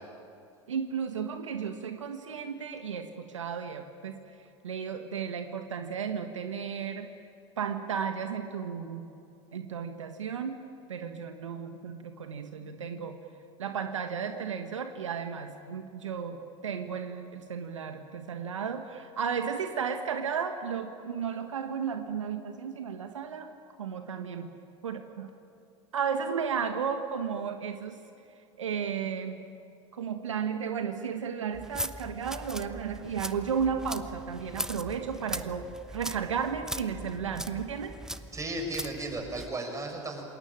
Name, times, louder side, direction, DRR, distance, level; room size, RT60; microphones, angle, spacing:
voice 1, 0.7-4.2 4.6-7.1 7.6-9.1 9.5-10.6 10.9-13.2 13.6-23.5 23.8-24.5 24.8-25.3 25.9-28.0 28.6-29.5 29.9-38.0, right 7 dB, 85° right, 7 dB, 1.5 m, -34 dB
sound 1, 31.5-39.6, right 1 dB, 5° right, 1.0 m, -40 dB
voice 2, 38.3-40.2, right 2 dB, 20° right, 3 dB, 6.5 m, -35 dB
28.0 x 20.5 x 8.9 m, 2.6 s
hypercardioid pair, 85°, 16 cm